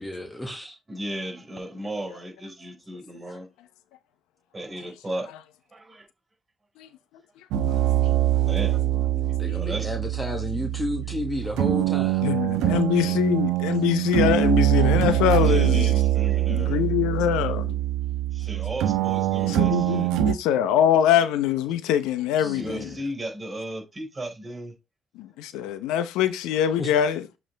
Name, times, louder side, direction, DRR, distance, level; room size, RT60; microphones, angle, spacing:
voice 1, 0.0-0.8 9.4-12.3 22.4-23.0 26.8-26.9, left 1 dB, 15° left, 1.5 m, -32 dB
voice 2, 0.9-3.5 4.5-5.3 5.7-6.1 8.5-8.8 9.5-9.9 13.0-13.1 15.4-16.8 18.3-20.1 22.4-24.7, right 1 dB, 20° right, 5.0 m, -35 dB
sound 1, 7.5-20.3, right 13 dB, 85° right, 1.0 m, -23 dB
voice 3, 12.2-16.0 16.5-17.8 19.5-22.9 25.2-27.3, left 10 dB, 90° left, 0.8 m, -23 dB
7.5 x 4.8 x 3.4 m
cardioid pair, 80°, 0 cm